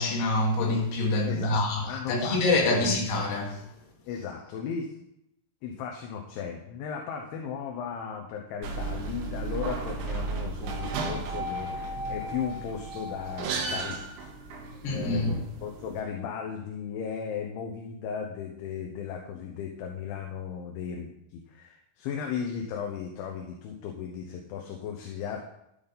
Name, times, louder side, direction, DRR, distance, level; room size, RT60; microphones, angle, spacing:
voice 1, 0.0-3.7 14.8-15.4, left 2 dB, 60° left, 3.7 m, -26 dB
voice 2, 1.3-2.9 4.1-4.9 5.6-25.4, left 7 dB, 75° left, 3.2 m, -36 dB
sound 1, 8.6-16.0, right 3 dB, 70° right, 2.9 m, -34 dB
12.5 x 9.0 x 4.1 m
omnidirectional pair, 5.8 m